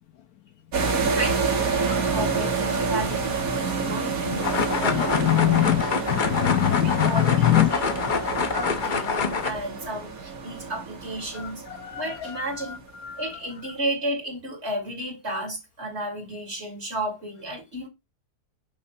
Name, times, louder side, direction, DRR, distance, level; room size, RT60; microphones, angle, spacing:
sound 1, 0.7-12.8, right 4 dB, 60° right, 1.9 m, -28 dB
voice 1, 1.2-5.8 6.8-11.6 11.9-12.8 13.2-17.9, right 1 dB, 40° right, 3.0 m, -33 dB
sound 2, 4.4-9.5, left 5 dB, 45° left, 0.6 m, -26 dB
voice 2, 4.9-7.9 11.3-13.4, left 13 dB, 70° left, 1.1 m, -25 dB
9.8 x 3.3 x 4.2 m
omnidirectional pair, 1.8 m